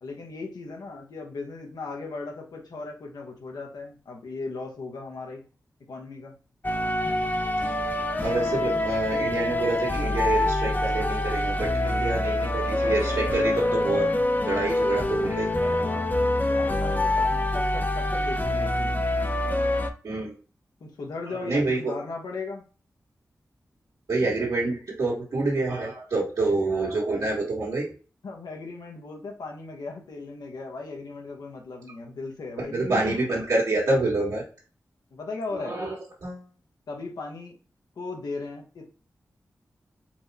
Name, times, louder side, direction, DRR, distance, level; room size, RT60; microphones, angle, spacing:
voice 1, 0.0-5.4 5.9-6.3 16.4-19.0 20.8-22.6 28.2-32.8 35.1-35.8 36.9-37.6 38.0-38.9, left 3 dB, 85° left, 1 dB, 1.2 m, -37 dB
Fantasy Background Music (Loop), 6.6-19.9, left 1 dB, 25° left, 0.7 m, -25 dB
voice 2, 8.2-14.1 14.5-16.1 20.0-20.3 21.3-21.9 24.1-27.9 32.6-34.4 35.5-36.0 36.2-36.4, right 2 dB, 70° right, -5 dB, 1.7 m, -27 dB
4.6 x 2.2 x 4.1 m, 0.37 s
cardioid pair, 45°, 7 cm